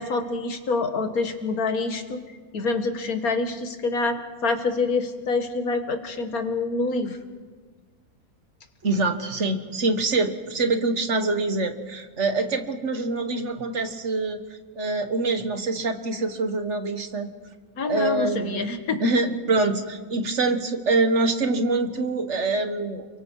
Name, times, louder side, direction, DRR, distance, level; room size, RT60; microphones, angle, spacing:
voice 1, 0.0-2.2 2.5-7.2 17.8-19.1, left 3 dB, 85° left, 7 dB, 2.1 m, -26 dB
voice 2, 8.8-14.4 14.7-17.3 17.9-18.7 19.0-23.1, right 3 dB, 55° right, 8 dB, 1.6 m, -25 dB
30.0 x 22.5 x 4.7 m, 1.5 s
omnidirectional pair, 1.5 m